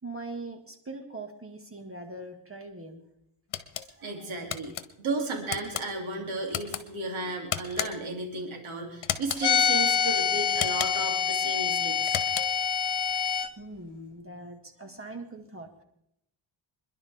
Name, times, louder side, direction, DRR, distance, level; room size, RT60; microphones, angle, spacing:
voice 1, 0.0-3.0 3.9-4.3 13.6-15.8, right 2 dB, 30° right, 5 dB, 2.0 m, -42 dB
sound 1, 3.5-3.9 4.5-4.8 5.5-5.9 6.5-6.8 7.5-8.1 9.0-9.5 10.5-11.1 12.0-12.7, left 10 dB, 75° left, 1.2 m, -33 dB
voice 2, 4.0-12.2, right 2 dB, 90° right, 1 dB, 3.2 m, -34 dB
sound 2, 9.4-13.5, left 7 dB, 60° left, 1.2 m, -26 dB
26.5 x 11.0 x 3.6 m, 0.79 s
cardioid pair, 105°, 46 cm